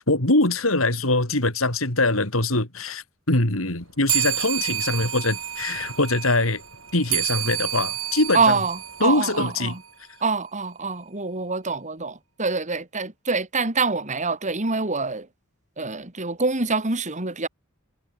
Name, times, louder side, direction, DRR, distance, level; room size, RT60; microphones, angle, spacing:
voice 1, 0.0-6.6 6.9-8.6 9.0-9.7, left 2 dB, 85° left, 5.3 m, -23 dB
sound 1, 4.1-9.9, right 13 dB, 85° right, 6.0 m, -29 dB
voice 2, 8.3-9.8 10.2-15.3 15.8-17.5, right 4 dB, 35° right, 3.0 m, -25 dB
head